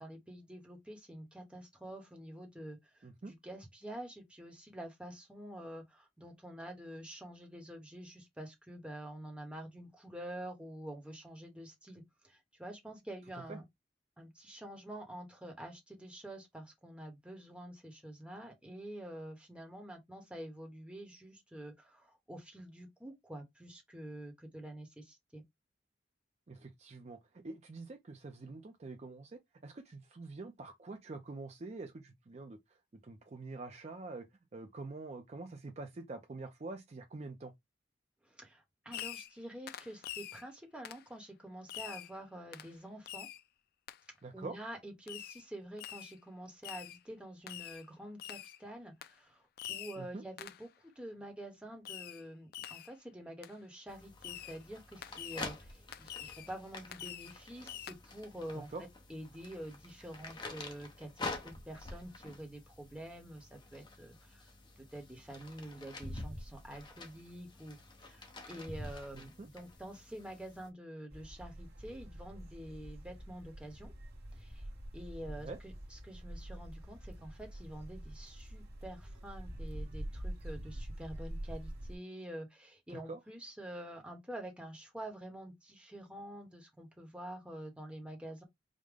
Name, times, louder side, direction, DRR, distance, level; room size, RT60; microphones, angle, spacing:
voice 1, 0.0-13.6 14.2-25.4 38.2-43.3 44.3-49.4 49.7-58.7 59.1-64.5 64.9-67.8 68.0-73.9 74.3-74.7 74.9-88.4, right 1 dB, 5° right, 1.0 m, -47 dB
voice 2, 3.0-3.3 13.3-13.6 26.5-32.8 33.0-34.3 34.5-37.5 44.2-44.6 50.0-50.2 58.5-58.8 69.1-69.5 75.3-75.6 82.9-83.2, right 3 dB, 35° right, 0.4 m, -46 dB
Fireworks, 38.9-39.4 39.7-40.4 40.8-41.1 41.7-42.1 42.5-42.7 43.1-43.4 43.9-44.0 45.1-45.4 45.8-46.2 46.6-47.0 47.5-47.8 48.2-48.6 49.0-49.2 49.6-50.0 50.4-50.7 51.8-52.2 52.5-52.9 53.4-53.5 54.2-54.6 55.0-55.5 55.9-56.5 56.9-57.4 57.7-57.9, left 12 dB, 55° left, 0.3 m, -45 dB
sound 1, 53.9-70.7, left 2 dB, 25° left, 0.8 m, -48 dB
sound 2, 71.1-82.0, right 1 dB, 55° right, 1.3 m, -45 dB
5.0 x 2.1 x 3.5 m
head